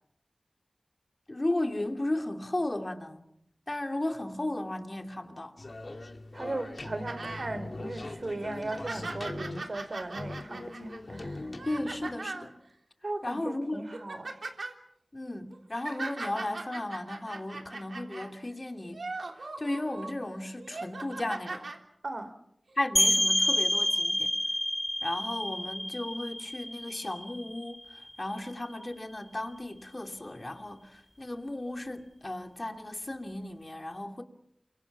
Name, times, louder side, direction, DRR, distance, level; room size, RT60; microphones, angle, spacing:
voice 1, 1.3-3.2 3.7-5.5 11.6-12.5 13.2-13.8 15.1-19.0 19.4-21.8 22.8-24.3 25.0-34.2, left 1 dB, 35° left, 2.8 m, -35 dB
sound 1, 5.6-12.2, left 2 dB, 55° left, 2.4 m, -41 dB
voice 2, 6.3-11.5 13.0-14.4 22.0-22.3, right 2 dB, 60° right, 2.9 m, -37 dB
sound 2, 7.1-7.5 8.0-8.1 8.5-12.5 13.2-13.4 13.8-14.7 15.5-18.3 18.8-20.1 20.6-21.8 22.7-22.8, right 3 dB, 80° right, 3.4 m, -40 dB
sound 3, 23.0-28.4, left 1 dB, 15° left, 1.2 m, -29 dB
29.5 x 25.0 x 6.0 m
wide cardioid pair, 65°, 0 cm